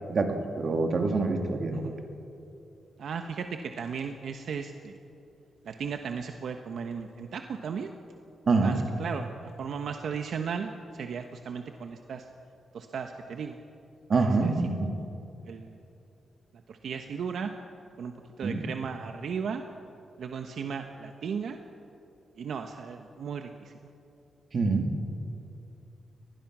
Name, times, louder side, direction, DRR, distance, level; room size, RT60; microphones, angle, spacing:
voice 1, 0.1-1.9 8.5-8.8 14.1-14.9 18.4-18.6 24.5-24.9, right 3 dB, 45° right, 4 dB, 2.2 m, -26 dB
voice 2, 3.0-5.0 5.6-7.9 8.6-12.3 12.7-13.6 14.4-14.5 15.0-15.1 15.4-15.8 16.7-17.5 18.0-19.6 20.2-21.6 22.4-23.7, right 6 dB, 70° right, 6 dB, 1.0 m, -36 dB
24.0 x 19.5 x 6.1 m, 2.8 s
wide cardioid pair, 135°, 0 cm